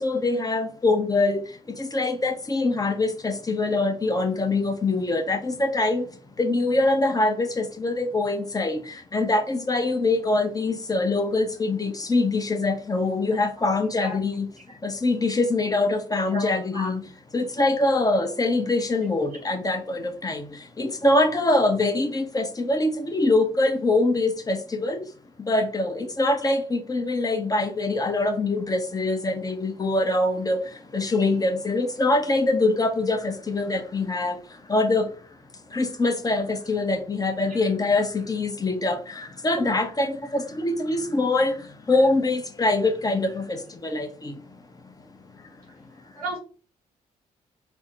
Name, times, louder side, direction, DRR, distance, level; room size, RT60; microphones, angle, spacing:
voice 1, 0.0-14.5 14.8-17.0 17.3-25.1 25.4-35.2 35.7-45.6, left 2 dB, 20° left, 0.6 m, -24 dB
voice 2, 13.3-13.7 14.0-14.2 16.3-16.9 46.1-46.4, right 1 dB, 90° right, 0.8 m, -33 dB
3.3 x 2.0 x 2.9 m
figure-of-eight pair, 40°, 19 cm